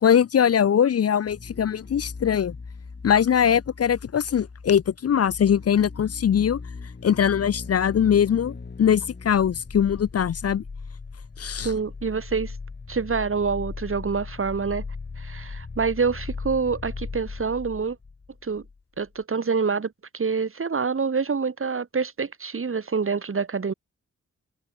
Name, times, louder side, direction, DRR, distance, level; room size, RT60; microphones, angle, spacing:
voice 1, 0.0-2.6 3.0-6.6 7.0-10.6 11.4-11.7, left 8 dB, 55° left, 0.5 m, -21 dB
sound 1, 1.2-18.8 19.0-19.1, left 4 dB, 35° left, 1.5 m, -38 dB
voice 2, 11.6-12.5 12.9-14.8 15.2-18.0 18.4-18.6 19.0-23.7, right 5 dB, 45° right, 1.5 m, -26 dB
wide cardioid pair, 90°, 30 cm